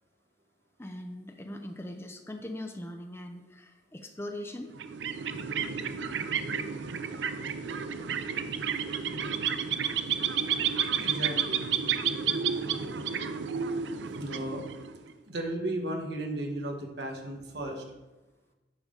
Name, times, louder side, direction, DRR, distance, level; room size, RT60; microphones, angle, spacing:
voice 1, 0.8-4.7, left 1 dB, 15° left, 5 dB, 0.6 m, -40 dB
sound 1, 4.7-15.1, right 7 dB, 85° right, 0.5 m, -31 dB
voice 2, 11.0-11.7 14.2-14.7 15.3-17.8, right 1 dB, 65° right, 2 dB, 1.4 m, -35 dB
9.5 x 3.5 x 6.6 m, 1.1 s
head